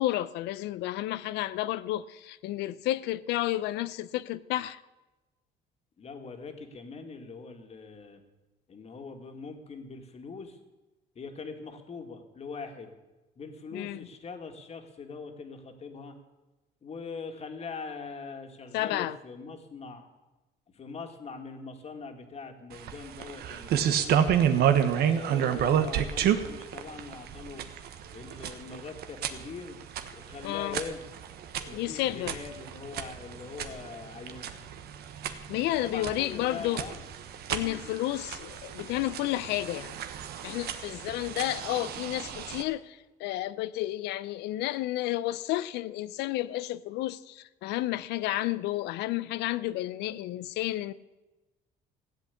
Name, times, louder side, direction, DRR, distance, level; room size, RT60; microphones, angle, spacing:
voice 1, 0.0-4.8 13.7-14.0 18.7-19.2 30.4-30.8 31.7-32.4 35.5-36.8 37.5-40.0 40.4-50.9, left 15 dB, 85° left, 0.6 m, -31 dB
voice 2, 6.0-8.2 8.7-10.6 11.2-13.0 13.4-16.2 16.8-20.1 20.7-24.2 24.8-27.6 28.1-29.8 30.1-31.0 31.7-34.7 35.8-37.0 37.5-37.9, left 4 dB, 40° left, 2.1 m, -42 dB
sound 1, 22.7-42.6, right 9 dB, 70° right, 1.2 m, -31 dB
16.0 x 8.3 x 8.4 m
cardioid pair, 110°, 17 cm